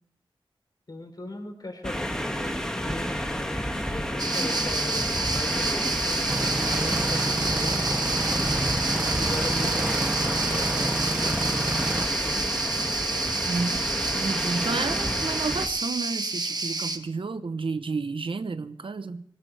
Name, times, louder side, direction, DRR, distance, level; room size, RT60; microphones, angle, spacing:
voice 1, 0.9-3.6 3.9-5.0 5.3-8.6 9.1-12.7, left 2 dB, 50° left, 3.6 m, -39 dB
sound 1, 1.8-15.7, equal, 5° left, 1.9 m, -31 dB
sound 2, 4.2-17.0, right 3 dB, 50° right, 1.3 m, -29 dB
sound 3, 6.3-12.1, right 2 dB, 20° right, 0.5 m, -30 dB
voice 2, 13.5-13.9 14.1-19.2, right 4 dB, 75° right, 0.9 m, -31 dB
19.0 x 17.5 x 3.3 m
wide cardioid pair, 75°, 9 cm